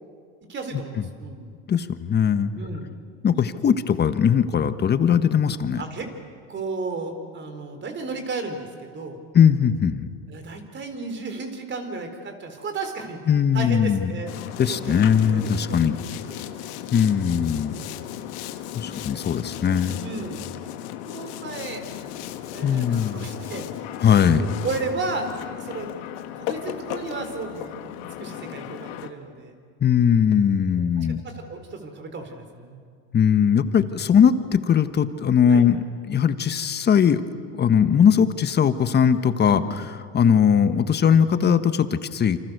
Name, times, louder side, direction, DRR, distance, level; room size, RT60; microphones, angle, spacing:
voice 1, 0.5-1.5 2.5-2.9 5.8-6.1 6.5-9.2 10.3-13.2 13.5-14.3 14.6-16.1 16.5-16.6 17.7-17.8 20.0-20.5 21.0-21.9 22.5-24.1 24.3-25.3 25.6-25.9 26.4-27.9 28.2-29.5 30.7-32.8 34.0-34.1 35.5-35.6 39.5-39.6, right 3 dB, 35° right, 6 dB, 4.1 m, -34 dB
voice 2, 1.7-2.5 3.2-5.8 9.3-10.1 13.3-14.1 14.6-16.0 16.9-17.7 18.7-20.0 22.6-23.3 24.0-24.4 29.8-31.2 33.1-37.2 37.6-39.6 40.1-42.4, left 8 dB, 30° left, 11 dB, 1.4 m, -20 dB
Boat Water vehicle, 14.3-29.1, left 11 dB, 75° left, 1.7 m, -35 dB
28.5 x 26.0 x 6.8 m, 2.1 s
supercardioid pair, 105°, 33 cm